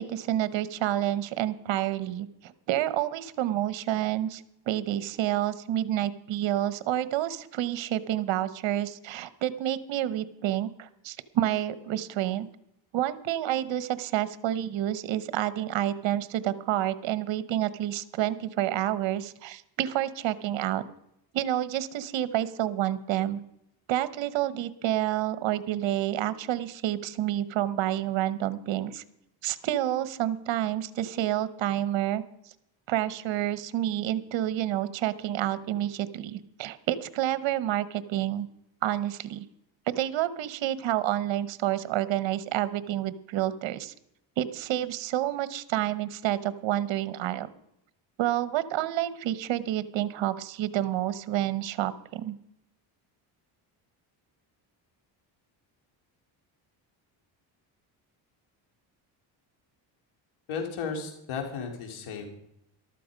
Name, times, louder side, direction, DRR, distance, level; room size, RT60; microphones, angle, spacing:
voice 1, 0.0-12.5 12.9-20.8 21.3-23.4 23.9-29.0 29.4-32.2 32.9-38.5 38.8-39.5 40.0-43.9 44.4-47.5 48.2-52.4, right 12 dB, 60° right, 15 dB, 1.0 m, -29 dB
voice 2, 60.5-62.3, left 5 dB, 75° left, 3 dB, 3.7 m, -34 dB
13.5 x 12.5 x 5.2 m, 0.80 s
cardioid pair, 95°, 50 cm